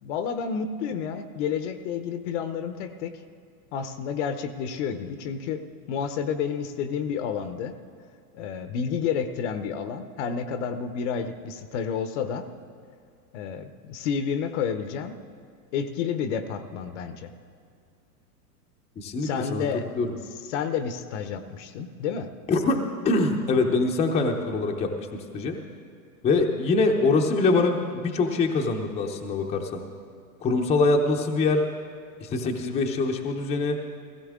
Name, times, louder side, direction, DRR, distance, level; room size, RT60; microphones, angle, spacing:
voice 1, 0.0-3.2 3.7-7.8 8.3-12.5 13.3-15.2 15.7-17.3 19.2-19.8 20.5-22.3, left 7 dB, 45° left, 10 dB, 0.9 m, -30 dB
voice 2, 19.0-19.7 19.9-20.1 22.5-22.8 23.0-25.5 26.2-29.8 30.4-31.6 32.2-33.8, left 3 dB, 15° left, 2 dB, 0.7 m, -24 dB
16.5 x 15.5 x 3.7 m, 2.4 s
hypercardioid pair, 135°, 48 cm